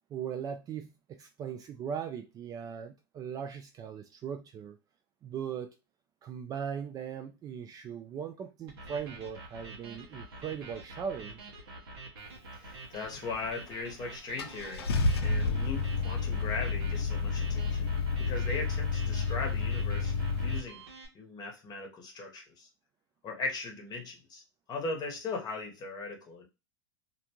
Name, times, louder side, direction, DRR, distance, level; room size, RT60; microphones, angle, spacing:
voice 1, 0.1-4.8 5.2-5.8 6.2-11.5, right 7 dB, 30° right, 0.3 m, -39 dB
sound 1, 8.7-21.1, right 2 dB, 75° right, 1.0 m, -47 dB
voice 2, 12.6-14.8 15.2-17.9 18.2-20.8 21.1-22.7 23.2-24.4 24.7-26.5, left 3 dB, 30° left, 0.9 m, -38 dB
Car / Engine starting, 13.7-13.8 14.4-20.6, left 4 dB, 85° left, 0.4 m, -30 dB
2.6 x 2.1 x 2.9 m
hypercardioid pair, 105°, 13 cm